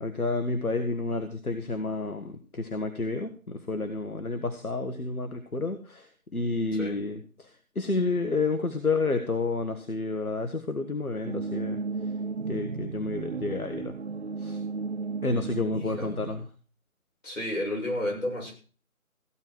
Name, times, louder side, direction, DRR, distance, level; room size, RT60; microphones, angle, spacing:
voice 1, 0.0-11.8 12.5-14.0 14.4-14.6 15.2-16.4, left 3 dB, 80° left, 1.6 m, -30 dB
sound 1, 11.2-16.5, right 4 dB, 55° right, 0.6 m, -34 dB
voice 2, 15.7-16.1 17.2-18.5, left 1 dB, 60° left, 7.2 m, -32 dB
15.5 x 9.6 x 4.6 m
figure-of-eight pair, 165°, 43 cm